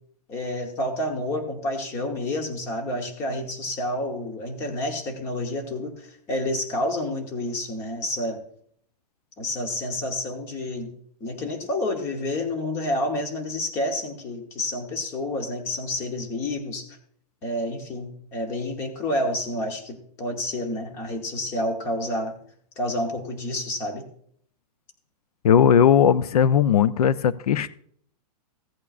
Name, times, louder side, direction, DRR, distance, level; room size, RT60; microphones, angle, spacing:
voice 1, 0.3-8.4 9.4-10.9 11.2-16.9 17.4-22.4 22.8-24.1, left 1 dB, 15° left, 4 dB, 0.9 m, -29 dB
voice 2, 25.4-27.7, left 8 dB, 65° left, 15 dB, 0.5 m, -18 dB
15.5 x 8.4 x 2.4 m, 0.63 s
hypercardioid pair, 180°, 21 cm